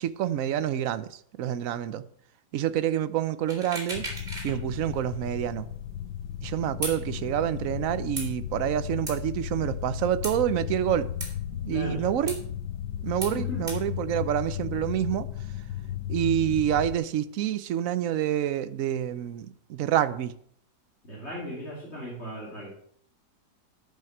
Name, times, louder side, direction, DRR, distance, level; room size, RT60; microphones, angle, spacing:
voice 1, 0.0-2.0 2.5-4.1 4.4-5.7 6.4-11.1 11.6-12.4 13.0-15.3 16.1-20.3, right 11 dB, 65° right, 0.9 m, -27 dB
sound 1, 3.5-4.6 4.9-5.0 6.8-7.0 8.2-8.3 9.1-9.2 10.2-10.4 11.2-11.3 12.3-12.4 13.2-13.4 13.7-13.8, right 1 dB, 25° right, 3.2 m, -35 dB
sound 2, 3.9-17.0, left 10 dB, 90° left, 1.4 m, -35 dB
voice 2, 11.7-12.0 13.3-13.7 21.0-22.7, left 1 dB, 40° left, 2.8 m, -37 dB
10.5 x 5.8 x 6.5 m
omnidirectional pair, 1.8 m